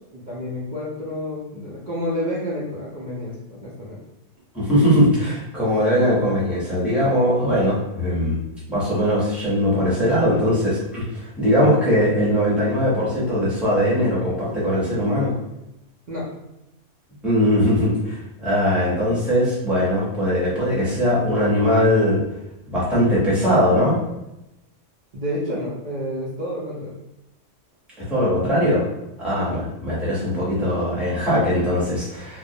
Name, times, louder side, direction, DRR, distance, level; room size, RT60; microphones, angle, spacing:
voice 1, 0.1-4.0 4.7-5.0 5.6-5.7 7.4-7.5 16.1-16.3 25.1-26.9 29.4-29.6, left 1 dB, 55° right, -8 dB, 0.5 m, -30 dB
voice 2, 4.5-8.4 8.7-15.3 17.2-22.2 22.7-24.0 28.1-28.9 29.2-32.4, equal, ahead, -9 dB, 0.7 m, -20 dB
2.3 x 2.0 x 2.7 m, 0.89 s
omnidirectional pair, 1.3 m